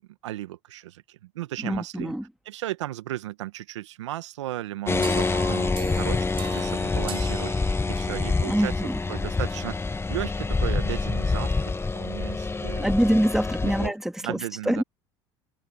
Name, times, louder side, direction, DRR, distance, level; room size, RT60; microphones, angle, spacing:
voice 1, 0.2-2.1 2.4-6.3 6.5-7.5 7.9-12.9 13.6-13.9 14.2-14.8, right 15 dB, 85° right, 1.5 m, -35 dB
voice 2, 1.6-2.2 8.4-9.0 12.8-14.4 14.7-14.8, right 1 dB, 5° right, 2.7 m, -24 dB
sound 1, 4.9-13.9, left 3 dB, 15° left, 1.7 m, -26 dB
sound 2, 5.0-8.3, right 7 dB, 35° right, 4.2 m, -39 dB
hypercardioid pair, 75°, 15 cm